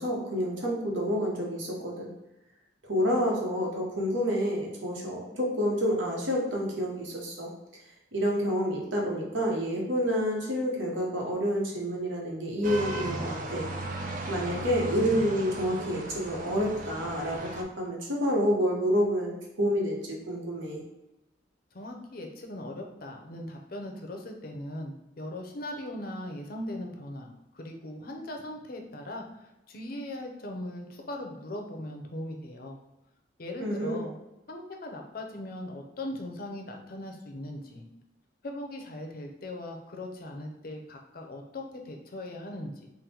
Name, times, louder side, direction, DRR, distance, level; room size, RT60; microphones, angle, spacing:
voice 1, 0.0-2.1 2.9-7.5 8.1-13.7 14.3-20.8 33.6-34.0, equal, 85° right, -1 dB, 1.0 m, -28 dB
sound 1, 12.6-17.6, right 2 dB, 45° right, 0.4 m, -36 dB
voice 2, 21.7-32.8 33.4-34.1 34.5-37.8 38.4-42.9, left 1 dB, 50° left, 2 dB, 0.6 m, -39 dB
3.8 x 2.1 x 4.2 m, 0.93 s
head